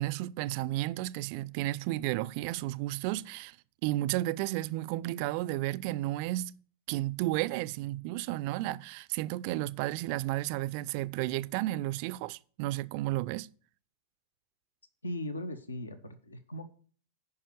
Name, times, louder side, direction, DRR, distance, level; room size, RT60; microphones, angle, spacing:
voice 1, 0.0-3.6 3.8-6.6 6.9-13.5, right 16 dB, 45° right, 0.3 m, -32 dB
voice 2, 15.0-16.6, left 1 dB, 75° left, 0.9 m, -38 dB
9.5 x 5.6 x 6.9 m
figure-of-eight pair, 90°, 0 cm